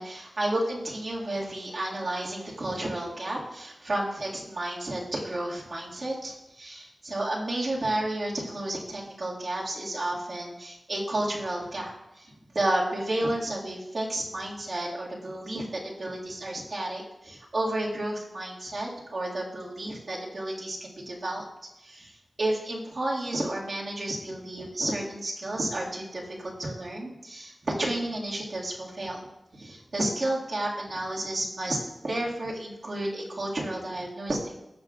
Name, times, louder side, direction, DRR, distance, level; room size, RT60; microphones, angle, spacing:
voice 1, 0.0-11.9 12.2-21.4 21.8-29.2 29.5-31.8 32.0-34.4, right 1 dB, 60° right, -4 dB, 2.1 m, -31 dB
14.5 x 6.6 x 2.5 m, 0.90 s
wide cardioid pair, 75°, 0 cm